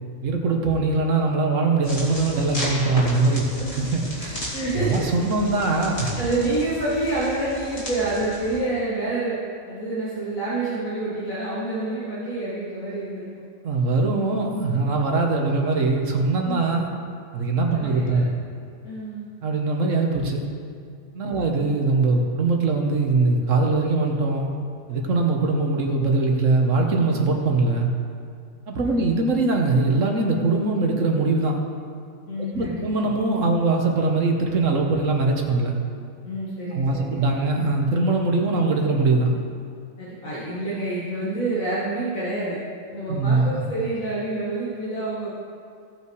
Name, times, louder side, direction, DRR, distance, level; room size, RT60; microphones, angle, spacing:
voice 1, 0.2-4.4 4.8-6.2 13.6-16.9 17.3-18.2 19.4-20.4 21.1-24.5 24.9-27.9 28.7-31.6 32.5-35.7 36.7-39.4 43.1-43.6, right 3 dB, 70° right, 2 dB, 1.5 m, -22 dB
sound 1, 1.8-8.6, equal, 50° left, 2.8 m, -34 dB
voice 2, 3.5-3.8 4.5-5.0 6.1-9.4 9.7-13.3 16.4-16.6 17.7-18.2 18.8-19.3 21.3-21.4 28.8-29.0 32.3-32.8 36.2-37.2 40.0-42.6 42.9-45.3, right 2 dB, 90° left, -9 dB, 2.3 m, -28 dB
16.5 x 5.7 x 4.7 m, 2.3 s
omnidirectional pair, 1.4 m